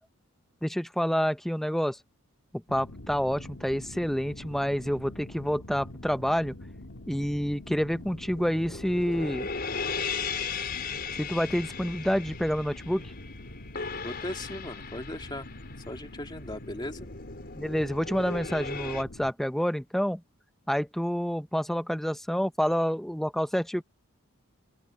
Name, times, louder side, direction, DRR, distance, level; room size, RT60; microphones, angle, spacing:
voice 1, 0.6-2.0 2.5-6.5 7.1-9.5 11.2-13.1 17.6-20.2 20.7-23.8, equal, ahead, 0.6 m, -28 dB
sound 1, 2.7-19.3, left 1 dB, 65° left, 2.9 m, -45 dB
sound 2, 8.1-19.0, left 5 dB, 50° left, 5.3 m, -37 dB
voice 2, 14.0-15.5 15.9-17.1, left 1 dB, 20° left, 2.5 m, -38 dB
open air
head